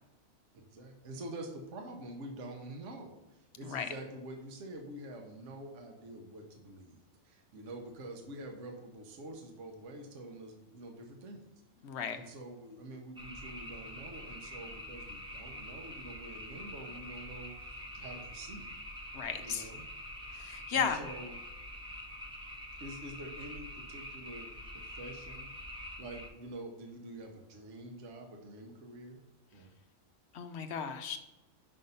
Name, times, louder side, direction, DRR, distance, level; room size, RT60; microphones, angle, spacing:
voice 1, 0.5-11.5 12.1-18.7 19.4-19.9 20.7-21.4 22.8-25.5 26.0-29.2 29.5-29.7, right 1 dB, 65° right, 2 dB, 1.2 m, -47 dB
voice 2, 11.8-12.2 19.1-19.7 20.3-21.0 30.3-31.2, left 7 dB, 60° left, 8 dB, 0.8 m, -35 dB
sound 1, 13.2-26.3, equal, 5° right, 0.8 m, -45 dB
5.8 x 5.3 x 5.4 m, 0.99 s
omnidirectional pair, 1.4 m